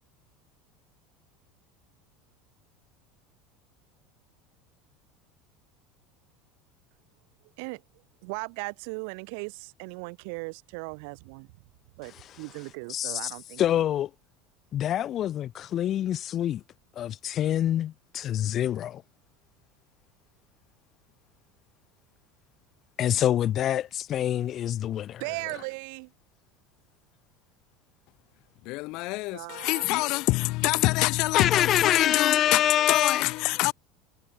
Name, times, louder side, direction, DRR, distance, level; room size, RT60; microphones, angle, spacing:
voice 1, 8.2-11.5 12.0-13.6 25.2-26.1 29.3-30.0, right 35 dB, 65° right, 6.6 m, -37 dB
voice 2, 12.9-13.3 13.6-14.1 14.7-16.6 17.0-19.0 23.0-25.2 31.3-33.3, left 11 dB, 30° left, 2.6 m, -26 dB
voice 3, 28.7-32.6 32.9-33.7, left 23 dB, 50° left, 0.4 m, -26 dB
cardioid pair, 160°, 0 cm